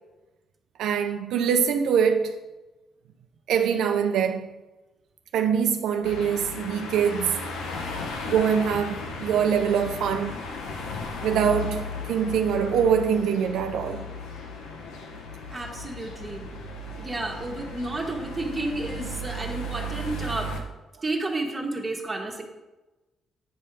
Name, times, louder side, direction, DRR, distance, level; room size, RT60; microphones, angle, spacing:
voice 1, 0.8-2.4 3.5-4.5 5.3-7.5 8.3-10.4 11.2-14.1, right 7 dB, 80° right, 0.4 m, -24 dB
sound 1, 6.0-20.6, left 2 dB, 90° left, 0.9 m, -35 dB
voice 2, 15.5-16.5 17.0-20.5 21.0-22.4, right 2 dB, 20° right, 1.3 m, -31 dB
8.6 x 3.4 x 5.9 m
cardioid pair, 90°, 0 cm